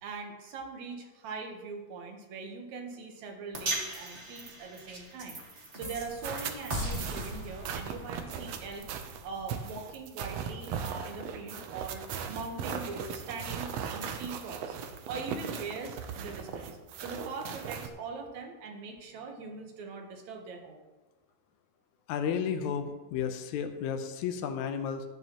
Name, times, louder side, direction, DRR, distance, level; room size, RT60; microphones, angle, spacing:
voice 1, 0.0-8.9 9.2-14.8 15.1-20.8, right 4 dB, 65° right, 3 dB, 2.2 m, -41 dB
sound 1, 3.5-9.9, right 1 dB, 50° right, 0.8 m, -39 dB
sound 2, 6.2-17.9, right 7 dB, 90° right, 1.4 m, -38 dB
voice 2, 22.1-25.0, left 7 dB, 75° left, 7 dB, 1.9 m, -32 dB
13.5 x 9.7 x 3.0 m, 1.2 s
omnidirectional pair, 4.0 m